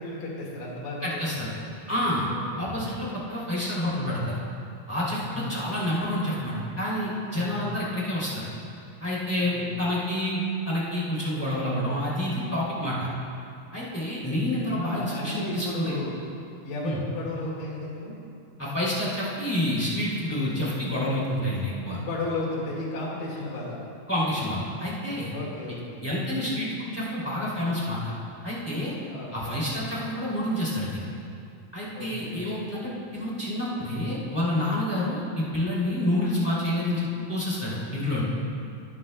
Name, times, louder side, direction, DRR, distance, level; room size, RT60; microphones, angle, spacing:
voice 1, 0.0-1.7 2.5-2.9 5.2-5.7 7.3-7.8 9.4-9.7 14.8-16.2 16.6-18.2 21.9-23.8 25.3-26.1 29.1-29.6 31.9-32.5, left 2 dB, 70° left, -5 dB, 3.4 m, -34 dB
voice 2, 1.0-1.5 1.9-2.3 2.6-4.4 4.9-8.5 9.0-13.1 13.7-15.9 16.8-17.0 18.6-22.0 24.1-25.3 26.0-28.1 28.4-28.9 29.3-31.1 31.7-38.2, left 1 dB, 5° left, -8 dB, 2.0 m, -28 dB
18.0 x 9.7 x 2.2 m, 2.5 s
omnidirectional pair, 4.1 m